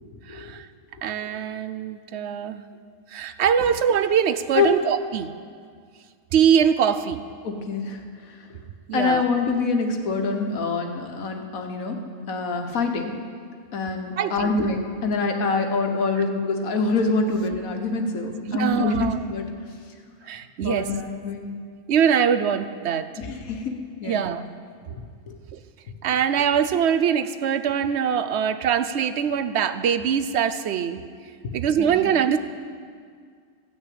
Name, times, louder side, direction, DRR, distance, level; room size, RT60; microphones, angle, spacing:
voice 1, 0.3-0.7 1.0-2.6 3.1-5.3 6.3-7.2 8.9-9.2 14.2-14.5 18.5-19.2 20.2-20.9 21.9-23.1 24.0-24.5 25.5-25.6 26.0-31.0 31.5-32.4, right 8 dB, 60° right, 11 dB, 0.8 m, -23 dB
voice 2, 7.4-8.0 8.3-8.4 8.9-12.0 12.3-13.2 13.7-19.4 20.6-21.5 23.2-24.3 24.9-25.0 25.3-25.4 31.8-32.0, left 3 dB, 80° left, 4 dB, 1.5 m, -25 dB
14.5 x 6.3 x 8.5 m, 2.1 s
omnidirectional pair, 1.5 m